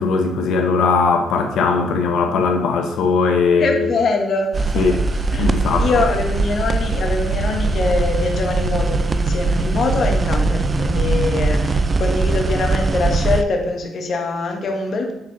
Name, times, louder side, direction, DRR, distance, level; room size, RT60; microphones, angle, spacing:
voice 1, 0.0-3.9 4.7-5.0 5.4-6.0, left 4 dB, 80° left, 4 dB, 1.0 m, -19 dB
voice 2, 3.5-5.0 5.3-15.1, left 3 dB, 55° left, 2 dB, 1.3 m, -23 dB
sound 1, 4.5-13.4, right 3 dB, 30° right, 0.4 m, -20 dB
7.1 x 4.3 x 4.0 m, 0.91 s
cardioid pair, 90°, 0 cm